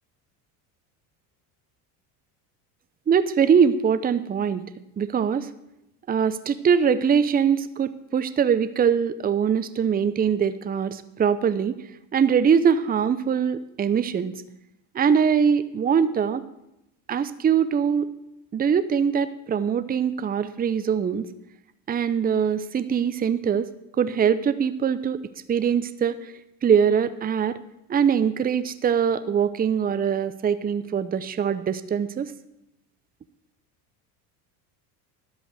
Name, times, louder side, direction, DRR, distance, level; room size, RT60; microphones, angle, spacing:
voice 1, 3.1-4.6 5.0-5.5 6.1-11.7 12.1-14.3 14.9-16.4 17.1-18.1 18.5-21.3 21.9-23.7 24.0-25.2 25.5-26.2 26.6-27.6 27.9-32.3, right 7 dB, 20° right, 13 dB, 0.6 m, -22 dB
11.0 x 7.8 x 6.4 m, 0.87 s
hypercardioid pair, 85°, 46 cm